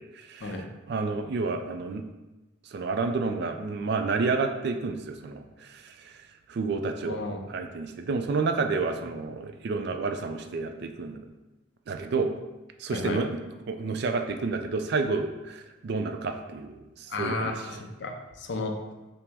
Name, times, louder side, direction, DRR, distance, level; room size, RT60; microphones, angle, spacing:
voice 1, 0.1-0.6 0.9-2.0 2.7-6.2 6.5-7.2 7.5-11.2 11.9-12.3 12.8-13.3 13.7-17.6, right 4 dB, 50° right, 6 dB, 0.3 m, -30 dB
voice 2, 7.0-7.4 12.9-13.3 17.1-18.9, left 2 dB, 55° left, 3 dB, 0.5 m, -33 dB
5.8 x 2.0 x 3.4 m, 1.1 s
head